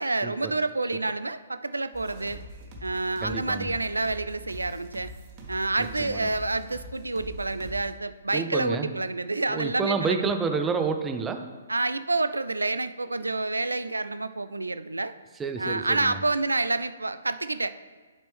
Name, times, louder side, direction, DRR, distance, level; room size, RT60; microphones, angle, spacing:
voice 1, 0.0-2.4 2.8-5.1 5.5-10.2 11.7-15.1 15.6-17.7, right 2 dB, 75° right, 13 dB, 0.4 m, -28 dB
sound 1, 1.9-7.9, equal, 30° right, 1.4 m, -43 dB
voice 2, 3.2-3.7 5.8-6.3 8.3-8.9 9.5-11.6 15.4-16.2, right 5 dB, 10° right, 7 dB, 0.5 m, -29 dB
10.5 x 4.3 x 3.3 m, 1.4 s
figure-of-eight pair, 125°, 0 cm